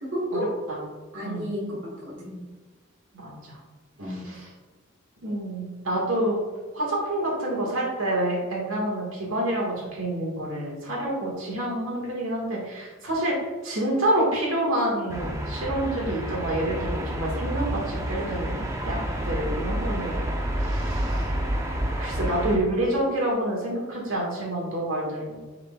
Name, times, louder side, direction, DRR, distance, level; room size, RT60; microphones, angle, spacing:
voice 1, 0.0-0.6 1.1-2.4 4.0-4.3, equal, 70° right, -4 dB, 1.7 m, -32 dB
voice 2, 3.1-3.6 4.1-4.5 5.2-6.4 6.7-19.0 19.2-21.3 22.0-25.4, right 1 dB, 85° right, -3 dB, 1.9 m, -28 dB
sound 1, 15.1-22.6, right 1 dB, 15° right, 0.6 m, -29 dB
10.5 x 3.9 x 2.4 m, 1.4 s
head